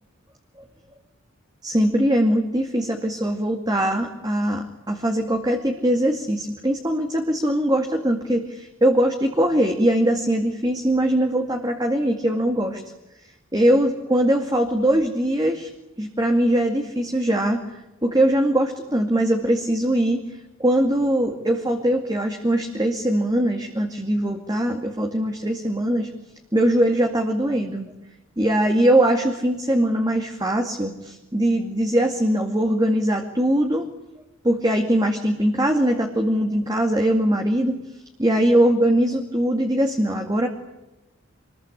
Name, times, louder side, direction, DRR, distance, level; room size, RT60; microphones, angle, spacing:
voice 1, 1.6-12.8 13.5-15.7 16.0-26.1 26.5-27.9 28.4-33.9 34.4-37.8 38.2-40.5, right 1 dB, 20° right, 3 dB, 2.3 m, -21 dB
26.5 x 21.5 x 9.9 m, 0.97 s
head